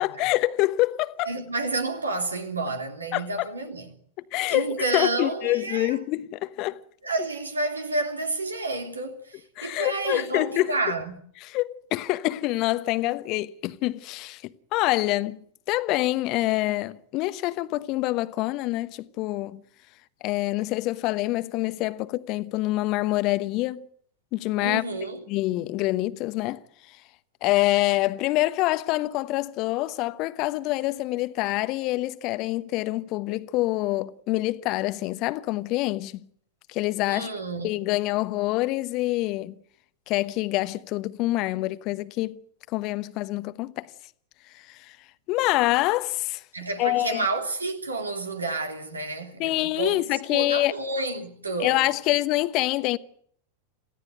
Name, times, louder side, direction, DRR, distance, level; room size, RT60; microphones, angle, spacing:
voice 1, 0.0-1.3 3.1-3.5 4.3-6.8 9.6-10.8 11.4-15.4 15.7-19.6 20.2-23.9 24.3-24.8 25.3-26.6 26.9-27.0 27.4-36.3 36.7-37.3 37.6-39.5 40.1-42.4 42.7-43.9 44.5-45.0 45.3-46.4 46.8-47.3 49.4-50.7 51.6-53.0, left 18 dB, 40° left, 1.1 m, -26 dB
voice 2, 1.2-4.0 4.5-6.0 7.0-11.1 24.6-25.2 37.1-37.7 46.5-51.8, right 2 dB, 75° right, 3.3 m, -30 dB
27.5 x 16.5 x 9.3 m
figure-of-eight pair, 90°, 0 cm